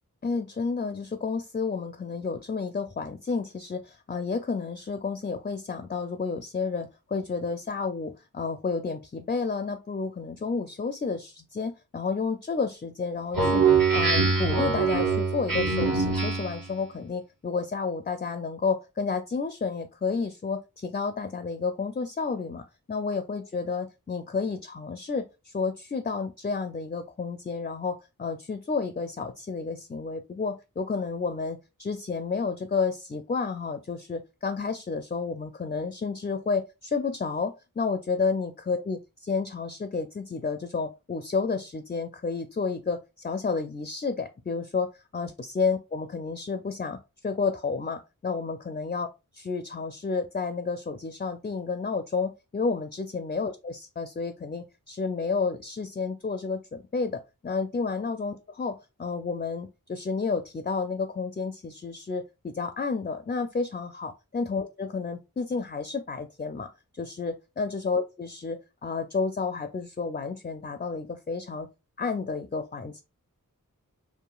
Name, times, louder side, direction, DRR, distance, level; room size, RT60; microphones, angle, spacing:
voice 1, 0.2-47.0 47.2-49.1 49.3-66.7 66.9-71.7 72.0-73.0, left 4 dB, 25° left, 9 dB, 0.4 m, -31 dB
Speech synthesizer, 13.3-16.7, right 4 dB, 65° right, 0.9 m, -23 dB
4.8 x 2.7 x 2.3 m, 0.26 s
wide cardioid pair, 45°, 35 cm